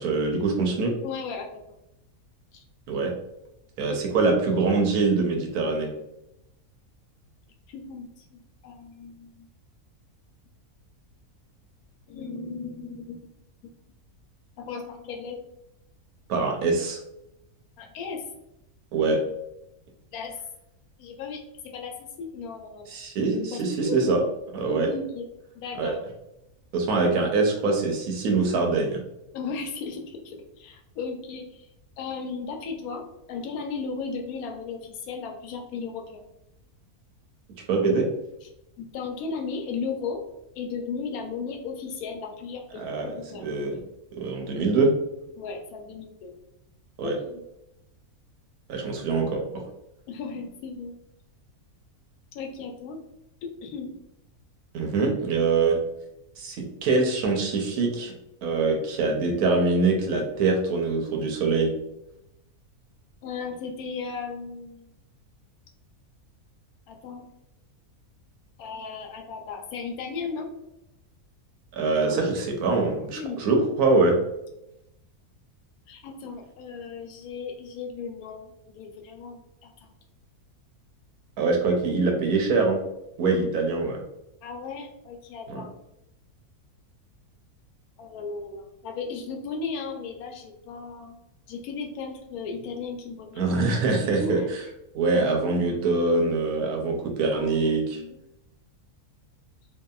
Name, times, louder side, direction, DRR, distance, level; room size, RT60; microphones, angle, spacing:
voice 1, 0.0-0.9 2.9-3.1 3.8-5.9 16.3-17.0 18.9-19.2 22.9-24.2 24.5-24.9 25.8-25.9 26.7-29.0 37.7-38.1 42.8-43.8 44.2-44.9 47.0-47.2 48.7-49.6 54.7-55.8 56.4-58.1 58.4-61.7 71.7-74.2 81.4-82.8 83.2-84.0 85.5-85.6 93.4-94.4 94.9-98.0, right 3 dB, 85° right, 1 dB, 1.1 m, -24 dB
voice 2, 1.0-1.6 2.5-2.6 7.7-9.5 12.1-13.2 14.6-15.4 17.8-18.2 20.1-20.3 21.0-21.4 21.7-21.9 22.2-22.8 23.5-24.3 24.7-25.3 25.5-26.0 29.3-31.7 32.0-36.3 38.4-38.5 38.8-40.2 40.5-43.5 45.4-46.3 47.0-47.4 50.1-50.9 52.3-53.0 53.4-53.9 63.2-64.9 66.9-67.3 68.6-70.5 72.1-72.2 73.1-73.5 75.9-79.9 84.4-85.7 88.0-91.2 91.5-93.5 94.2-94.5 95.1-95.3 97.3-98.2, left 5 dB, 80° left, 3 dB, 1.0 m, -35 dB
2.7 x 2.6 x 2.3 m, 0.86 s
omnidirectional pair, 1.6 m